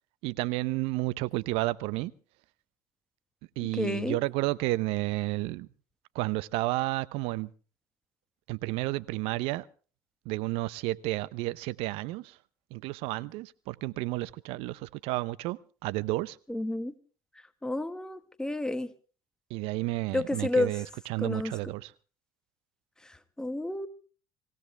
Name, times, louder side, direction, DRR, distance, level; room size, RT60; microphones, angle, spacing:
voice 1, 0.2-2.1 3.6-5.7 6.1-7.5 8.5-9.6 10.3-12.3 12.7-16.4 19.5-20.8 21.1-21.9, right 19 dB, 70° right, 0.7 m, -31 dB
voice 2, 3.6-4.2 16.5-16.9 17.6-18.9 20.1-20.8 21.2-21.6 23.4-23.9, left 2 dB, 5° left, 1.6 m, -30 dB
25.5 x 16.5 x 3.4 m
supercardioid pair, 80°, 10 cm